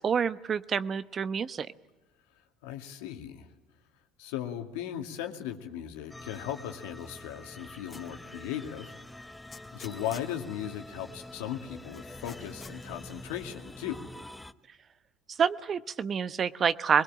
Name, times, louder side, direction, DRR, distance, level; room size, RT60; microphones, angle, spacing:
voice 1, 0.0-1.7 15.3-17.0, right 7 dB, 40° right, 15 dB, 1.0 m, -28 dB
voice 2, 2.6-3.5 4.2-9.0 9.7-14.0, left 10 dB, 75° left, 5 dB, 2.3 m, -37 dB
sound 1, 6.1-14.5, left 1 dB, 10° left, 1.1 m, -46 dB
sound 2, 7.9-8.2 8.7-8.8 9.5-10.4 11.9-12.8, left 4 dB, 30° left, 2.8 m, -48 dB
23.5 x 21.5 x 8.9 m, 1.1 s
hypercardioid pair, 70°, 0 cm